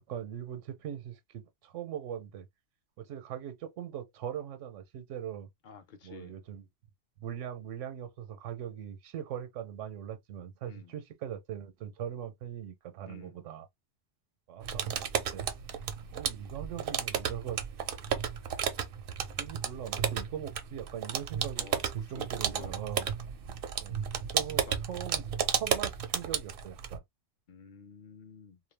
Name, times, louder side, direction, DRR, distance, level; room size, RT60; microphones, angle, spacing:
voice 1, 0.1-2.5 3.0-5.5 6.0-6.7 7.2-13.7 14.5-15.5 16.1-17.6 19.4-23.1 23.8-24.0 24.3-27.0, right 9 dB, 85° right, 1.0 m, -41 dB
voice 2, 5.6-6.4 10.7-10.9 13.1-13.4 21.6-21.8 22.1-22.7 24.4-24.7 27.5-28.6, left 5 dB, 55° left, 0.6 m, -51 dB
sound 1, 14.6-27.0, right 8 dB, 60° right, 0.6 m, -33 dB
2.3 x 2.1 x 3.2 m
omnidirectional pair, 1.2 m